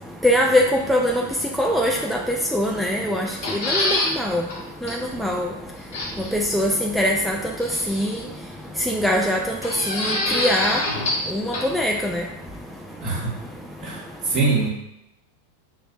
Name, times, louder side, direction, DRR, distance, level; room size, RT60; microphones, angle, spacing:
voice 1, 0.2-1.2 1.6-2.2 2.5-4.4 4.8-5.5 6.3-7.4 7.9-8.1 8.9-9.4 9.9-10.8 11.3-12.2, equal, ahead, -1 dB, 0.3 m, -22 dB
sound 1, 3.2-4.1 4.5-4.6 4.9-5.0 5.9-6.3 7.6-8.2 9.6-11.3 11.5-11.6, left 2 dB, 60° left, 1.0 m, -25 dB
voice 2, 13.8-14.7, right 3 dB, 40° right, -3 dB, 1.0 m, -23 dB
5.6 x 2.1 x 2.6 m, 0.83 s
figure-of-eight pair, 90°, 0 cm